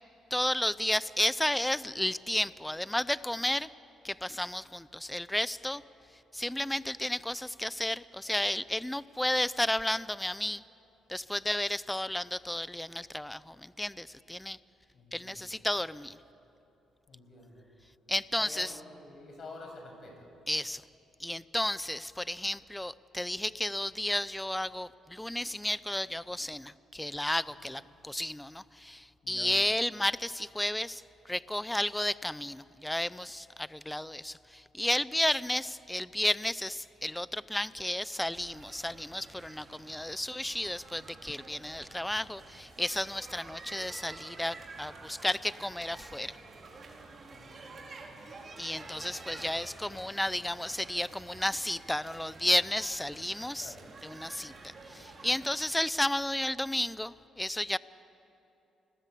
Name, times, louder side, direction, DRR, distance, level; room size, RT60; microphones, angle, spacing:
voice 1, 0.3-3.7 4.0-5.8 6.3-10.6 11.1-14.6 15.1-16.2 18.1-18.7 20.5-20.8 21.2-46.4 48.6-53.7 54.0-57.8, left 1 dB, 10° left, 17 dB, 0.6 m, -32 dB
voice 2, 14.9-15.6 17.1-17.7 18.4-20.3 27.6-27.7 29.2-29.5 47.3-48.3 48.7-50.1 53.6-53.9, left 2 dB, 50° left, 2 dB, 7.3 m, -50 dB
sound 1, 38.3-55.5, right 3 dB, 40° right, 4.3 m, -49 dB
29.5 x 20.5 x 8.4 m, 2.9 s
cardioid pair, 90°, 0 cm